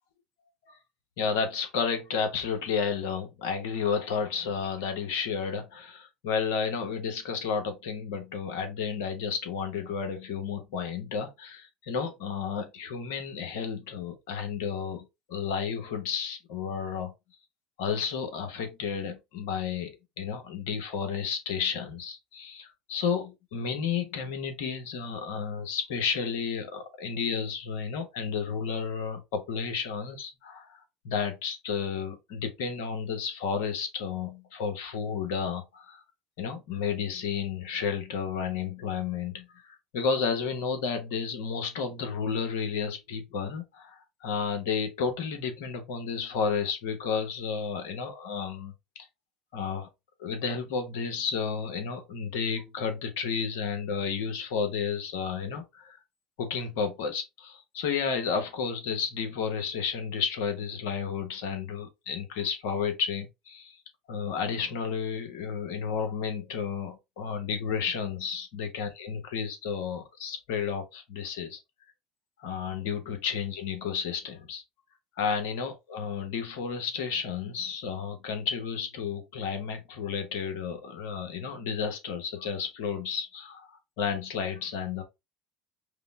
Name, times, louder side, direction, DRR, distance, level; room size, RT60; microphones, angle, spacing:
voice 1, 1.2-17.1 17.8-36.0 36.4-49.1 49.5-49.9 50.2-56.0 56.4-63.8 64.1-71.6 72.4-74.6 75.2-85.0, left 6 dB, 70° left, 1.0 m, -32 dB
5.0 x 2.1 x 3.4 m
hypercardioid pair, 75°, 0 cm